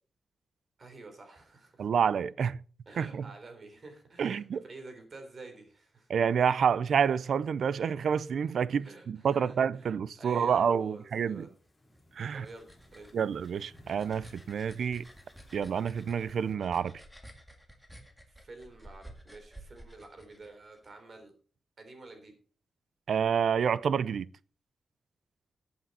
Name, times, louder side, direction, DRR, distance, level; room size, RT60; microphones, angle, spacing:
voice 1, 0.8-1.9 2.9-6.1 8.8-9.8 10.2-11.5 12.3-13.1 18.3-21.3 21.8-22.3, right 3 dB, 45° right, 3.6 m, -50 dB
voice 2, 1.8-2.6 3.0-3.3 4.2-4.6 6.1-11.5 12.2-12.4 13.1-15.0 15.5-16.9 23.1-24.3, right 7 dB, 75° right, 0.5 m, -28 dB
sound 1, 10.7-16.5, left 1 dB, 20° left, 5.3 m, -61 dB
sound 2, 12.0-20.9, right 1 dB, 5° right, 1.9 m, -53 dB
15.0 x 8.5 x 4.2 m
wide cardioid pair, 145°, 0 cm